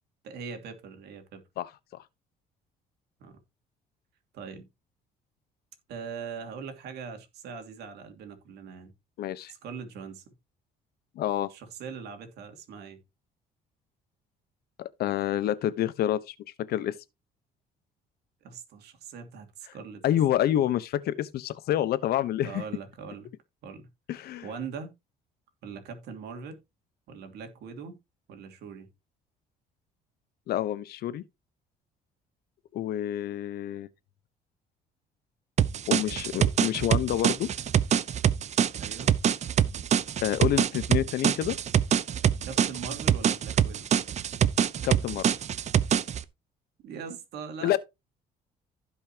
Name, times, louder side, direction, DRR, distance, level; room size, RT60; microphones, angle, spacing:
voice 1, 0.2-1.4 3.2-3.4 4.3-4.7 5.9-8.9 9.5-10.2 11.5-13.0 18.4-20.0 22.4-23.3 23.6-23.9 24.4-24.9 25.6-26.6 27.1-28.0 28.3-28.9 38.8-39.1 42.4-43.9 46.8-47.8, right 6 dB, 75° right, 2.8 m, -41 dB
voice 2, 1.6-2.0 9.2-9.5 11.2-11.5 14.8-16.3 16.7-17.0 20.0-22.6 24.1-24.5 30.5-31.2 32.7-33.9 35.9-37.5 40.2-41.6 44.8-45.3 47.6-47.8, left 12 dB, 70° left, 1.0 m, -28 dB
sound 1, 35.6-46.2, right 9 dB, 40° right, 0.7 m, -25 dB
15.5 x 5.5 x 2.9 m
cardioid pair, 110°, 17 cm